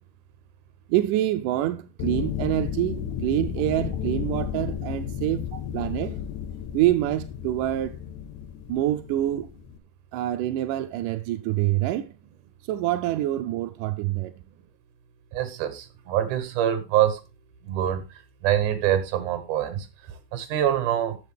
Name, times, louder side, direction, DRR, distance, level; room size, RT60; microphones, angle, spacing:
voice 1, 0.9-5.5 5.7-6.2 6.7-8.0 8.7-9.5 10.1-12.1 12.7-14.3, right 14 dB, 80° right, 1.9 m, -26 dB
sound 1, 2.0-9.8, left 9 dB, 75° left, 2.0 m, -33 dB
voice 2, 15.3-17.2 17.6-21.2, right 11 dB, 65° right, 2.5 m, -25 dB
14.0 x 6.6 x 3.4 m
omnidirectional pair, 4.4 m